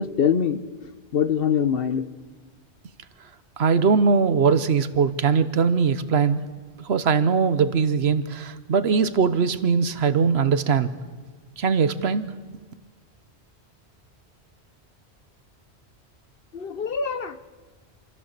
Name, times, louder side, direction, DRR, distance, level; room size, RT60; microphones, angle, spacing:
voice 1, 0.0-2.0 16.5-17.4, left 7 dB, 60° left, 11 dB, 1.0 m, -24 dB
voice 2, 3.6-6.5 6.8-10.9 11.6-12.3, right 5 dB, 70° right, 12 dB, 1.2 m, -21 dB
27.5 x 15.5 x 6.7 m, 1.4 s
omnidirectional pair, 1.1 m